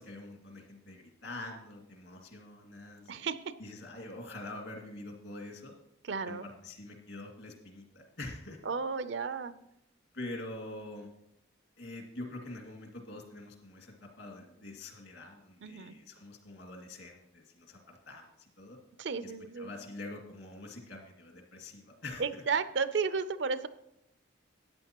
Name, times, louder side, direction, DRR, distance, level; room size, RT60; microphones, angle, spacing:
voice 1, 0.0-3.1 3.6-5.7 6.3-8.6 10.1-11.1 11.8-18.8 19.2-19.3 19.6-22.4, left 2 dB, 70° left, 0 dB, 2.2 m, -45 dB
voice 2, 3.1-3.5 6.0-6.5 8.6-9.5 15.6-16.0 19.0-19.7 22.2-23.7, right 5 dB, 65° right, 13 dB, 0.5 m, -33 dB
13.0 x 9.2 x 3.0 m, 0.81 s
head